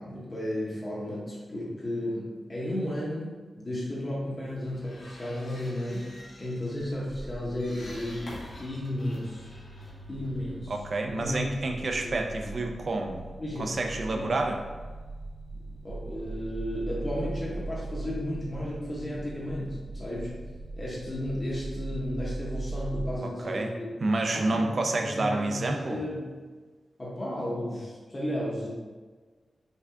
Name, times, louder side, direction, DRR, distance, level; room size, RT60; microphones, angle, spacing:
voice 1, 0.0-6.1 6.4-9.5 10.1-10.7 11.1-11.5 12.0-12.1 12.4-12.6 13.4-13.8 14.1-14.3 15.5-20.3 20.8-23.9 24.3-24.7 25.0-26.3 27.0-28.7, left 1 dB, 20° left, -6 dB, 0.8 m, -34 dB
sound 1, 4.5-10.9, left 1 dB, 60° left, 1.1 m, -48 dB
sound 2, 6.9-23.1, right 2 dB, 25° right, 0.9 m, -40 dB
voice 2, 10.7-13.2 13.6-14.6 23.2-23.7 24.0-26.0, right 2 dB, 40° right, 3 dB, 0.5 m, -29 dB
5.6 x 2.4 x 3.6 m, 1.4 s
wide cardioid pair, 180°, 0 cm